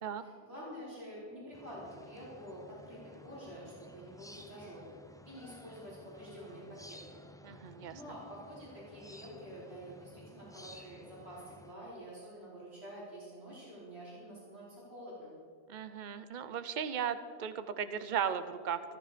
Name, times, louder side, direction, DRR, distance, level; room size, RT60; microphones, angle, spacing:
voice 1, 0.2-4.8 5.2-7.2 7.9-15.3, equal, 70° right, -8 dB, 5.0 m, -48 dB
sound 1, 1.5-11.7, left 1 dB, 5° left, 0.4 m, -55 dB
voice 2, 7.4-8.0 15.7-18.8, right 8 dB, 50° right, 12 dB, 0.8 m, -36 dB
15.0 x 14.0 x 5.1 m, 2.2 s
omnidirectional pair, 1.1 m